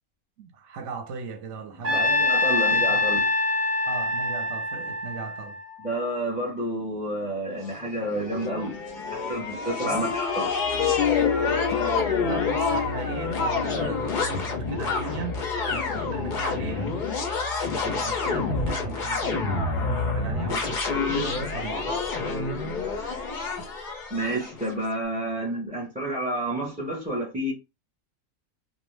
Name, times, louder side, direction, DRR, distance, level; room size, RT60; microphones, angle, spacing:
voice 1, 0.4-2.2 2.4-3.1 3.9-5.6 9.8-10.1 12.2-15.4 15.7-17.0 17.7-22.0, right 5 dB, 60° right, 0.9 m, -37 dB
voice 2, 1.7-3.3 5.8-8.8 9.0-10.5 24.1-27.5, right 1 dB, 10° right, 0.4 m, -30 dB
Trumpet, 1.8-6.1, left 2 dB, 35° right, 0.9 m, -25 dB
sound 1, 7.7-24.7, left 4 dB, 60° left, 0.5 m, -28 dB
sound 2, 10.8-16.6, left 8 dB, 90° left, 1.1 m, -30 dB
2.5 x 2.1 x 3.1 m
omnidirectional pair, 1.5 m